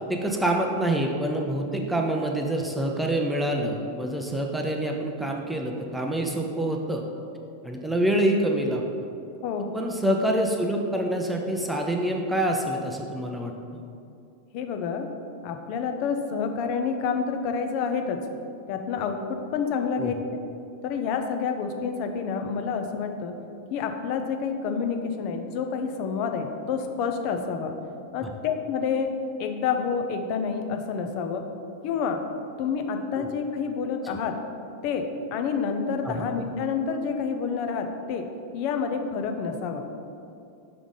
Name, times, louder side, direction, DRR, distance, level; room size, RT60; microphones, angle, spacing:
voice 1, 0.0-7.0 7.6-8.8 9.7-13.8 20.0-20.1 28.2-28.3 33.2-33.3 36.0-36.3, right 1 dB, 5° right, 1 dB, 0.5 m, -26 dB
voice 2, 9.4-9.7 14.5-15.1 15.4-18.2 18.7-20.1 20.8-23.3 23.7-27.7 28.1-29.1 29.4-31.4 31.8-32.2 32.6-34.3 34.8-38.2 38.5-39.9, left 6 dB, 45° left, 5 dB, 0.5 m, -28 dB
5.9 x 3.6 x 5.3 m, 2.5 s
figure-of-eight pair, 90°, 0 cm